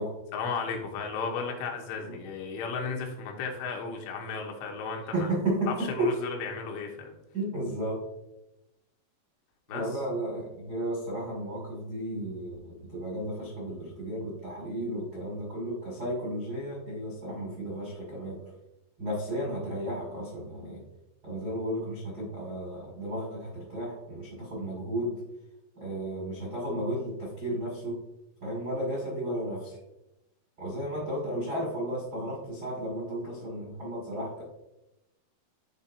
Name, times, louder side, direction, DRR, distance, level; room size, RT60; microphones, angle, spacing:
voice 1, 0.3-5.3 5.7-7.1 9.7-9.8, left 5 dB, 80° left, 1 dB, 3.2 m, -34 dB
voice 2, 5.1-5.9 7.3-8.0 9.7-18.4 19.0-20.8 21.2-25.2 25.8-28.0 28.4-29.8 30.6-34.4, right 1 dB, 70° right, -4 dB, 0.9 m, -33 dB
11.5 x 4.5 x 2.7 m, 0.93 s
omnidirectional pair, 5.8 m